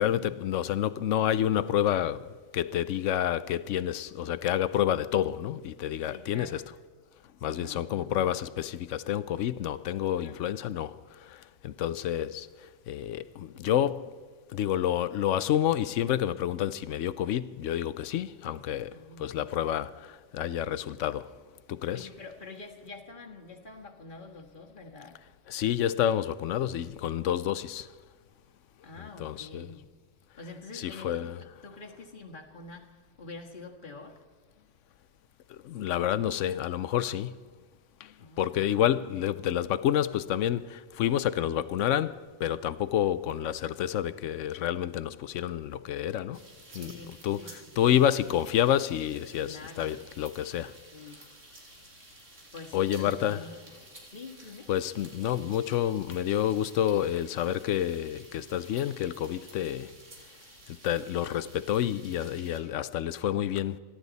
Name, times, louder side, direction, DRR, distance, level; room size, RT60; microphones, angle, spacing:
voice 1, 0.0-6.6 7.4-14.2 14.5-21.4 21.7-22.1 25.5-27.9 29.2-29.7 30.7-31.4 35.5-37.4 38.0-46.4 46.7-46.9 47.2-47.4 47.8-50.7 52.7-53.4 54.7-59.9 60.8-63.8, left 11 dB, 80° left, 1.0 m, -29 dB
voice 2, 6.1-6.7 7.4-8.4 10.1-10.5 18.5-19.6 20.8-21.0 21.9-25.2 28.8-29.9 30.4-32.9 33.2-34.2 38.2-38.9 46.7-47.9 49.4-50.0 50.9-51.3 52.5-53.7 54.1-54.7, left 3 dB, 45° left, 1.9 m, -47 dB
sound 1, 46.3-62.6, right 2 dB, 90° right, 2.9 m, -52 dB
28.5 x 11.5 x 4.1 m
omnidirectional pair, 1.2 m